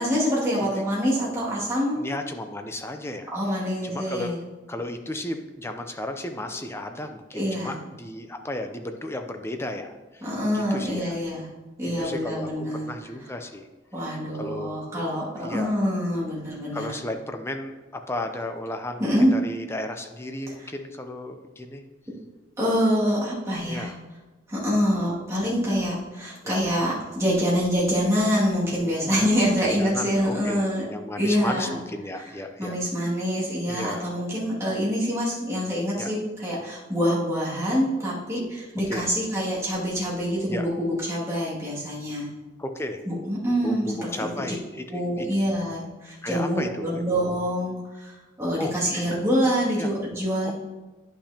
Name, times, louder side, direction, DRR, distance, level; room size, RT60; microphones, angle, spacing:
voice 1, 0.0-2.1 3.3-4.4 7.3-7.8 10.2-11.5 11.8-12.9 13.9-16.9 19.0-19.4 20.6-20.7 22.6-23.9 24.5-30.8 31.2-31.8 32.2-32.3 32.6-42.3 43.1-44.5 44.9-50.5, equal, 15° right, -8 dB, 2.2 m, -25 dB
voice 2, 2.0-3.3 3.8-4.3 4.7-10.3 10.5-11.2 11.8-13.7 14.3-15.0 15.4-15.8 16.7-21.8 23.7-23.9 26.4-26.6 29.0-29.3 29.6-32.8 33.7-34.1 35.9-36.1 38.9-39.1 40.5-40.7 42.6-43.0 43.6-45.3 46.2-47.0 48.6-48.7 49.8-49.9 50.5-50.6, left 1 dB, 15° left, 6 dB, 0.5 m, -34 dB
10.5 x 5.7 x 2.8 m, 1.2 s
head